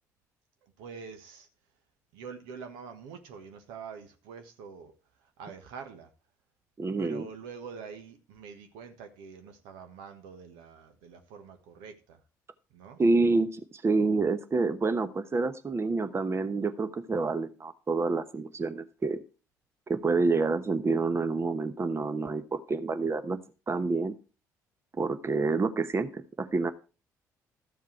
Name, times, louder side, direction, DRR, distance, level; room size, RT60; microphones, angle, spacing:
voice 1, 0.6-1.5 2.1-4.9 5.2-6.1 7.0-12.2 12.7-13.0, right 6 dB, 75° right, 1.4 m, -45 dB
voice 2, 6.8-7.2 13.0-19.2 19.9-23.4 23.7-24.1 25.0-26.7, right 3 dB, 30° right, 1.1 m, -28 dB
13.5 x 7.3 x 4.5 m
hypercardioid pair, 50°, 9 cm